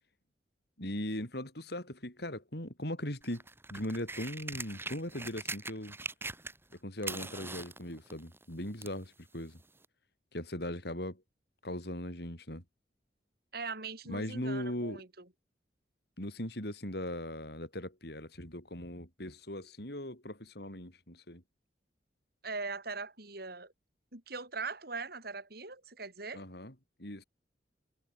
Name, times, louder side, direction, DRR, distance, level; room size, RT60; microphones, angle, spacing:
voice 1, 0.8-3.4 3.7-6.0 6.8-9.6 10.3-11.2 11.6-12.6 14.1-15.0 16.2-21.4 26.3-26.7 27.0-27.2, left 1 dB, 65° left, 7.9 m, -39 dB
sound 1, 3.2-6.7 7.0-9.0 9.8-9.9, right 3 dB, 15° right, 4.7 m, -42 dB
voice 2, 13.5-15.3 22.4-23.7 24.1-26.4, right 4 dB, 60° right, 7.4 m, -41 dB
head